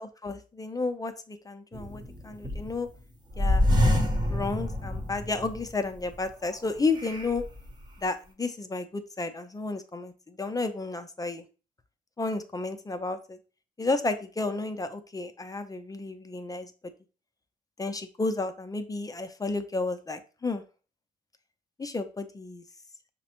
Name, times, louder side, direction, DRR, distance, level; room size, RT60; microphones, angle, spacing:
voice 1, 0.0-2.9 3.4-3.6 4.3-7.4 8.0-11.4 12.2-13.4 13.8-16.7 17.8-20.6 21.8-22.6, left 3 dB, 20° left, 9 dB, 0.5 m, -32 dB
sound 1, 1.7-2.9 3.3-5.7 6.1-6.2 7.0-7.7, left 1 dB, 20° right, 0.8 m, -26 dB
5.8 x 2.1 x 2.9 m, 0.34 s
cardioid pair, 90°, 20 cm